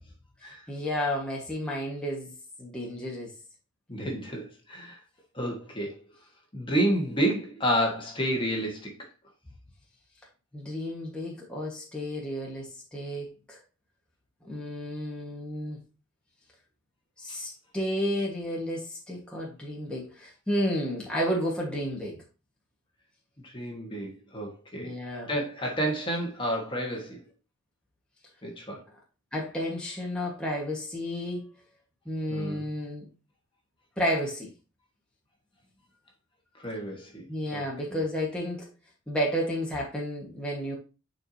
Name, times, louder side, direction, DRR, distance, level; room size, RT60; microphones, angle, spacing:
voice 1, 0.7-2.3 2.6-3.3 10.5-13.6 14.4-15.8 17.2-22.2 24.7-25.3 29.3-31.5 32.0-33.1 34.0-34.5 37.3-38.7 39.1-40.7, equal, 5° left, 1.5 m, -32 dB
voice 2, 3.9-5.0 5.3-6.0 6.5-8.9 17.3-17.4 23.4-24.9 25.3-27.2 28.4-28.8 32.3-32.7 36.6-37.6, right 1 dB, 25° left, 1.6 m, -30 dB
10.0 x 4.7 x 2.8 m
head